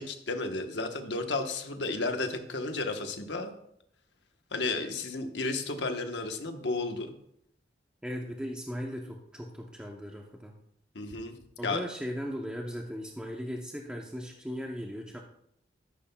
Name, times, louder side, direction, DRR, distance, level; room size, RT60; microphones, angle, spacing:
voice 1, 0.0-3.6 4.5-7.1 10.9-11.4 11.6-11.8, left 3 dB, 75° left, 5 dB, 1.1 m, -33 dB
voice 2, 8.0-10.5 11.6-15.2, equal, 5° right, 0 dB, 0.7 m, -37 dB
13.0 x 11.0 x 2.3 m, 0.74 s
head